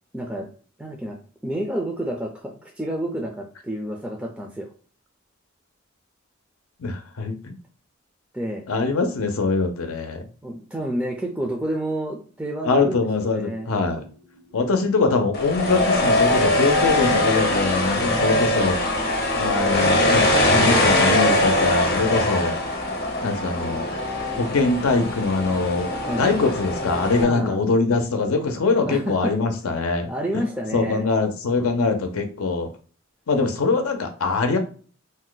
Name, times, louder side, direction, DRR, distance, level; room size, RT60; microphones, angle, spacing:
voice 1, 0.1-0.5 0.8-1.2 1.4-4.7 8.3-8.6 10.4-13.7 17.9-18.4 22.0-22.3 26.0-26.4 27.2-27.6 28.8-29.4 30.1-31.1, right 1 dB, 5° right, 0 dB, 0.4 m, -29 dB
voice 2, 6.8-7.5 8.7-10.2 12.6-14.0 14.5-18.8 19.3-22.5 23.2-23.9 24.4-30.1 30.7-32.7 33.3-34.6, left 3 dB, 90° left, 5 dB, 0.6 m, -23 dB
sound 1, 13.8-21.4, right 5 dB, 90° right, 0.8 m, -39 dB
sound 2, 15.3-27.2, left 1 dB, 45° left, 0.7 m, -22 dB
2.7 x 2.1 x 3.8 m, 0.41 s
head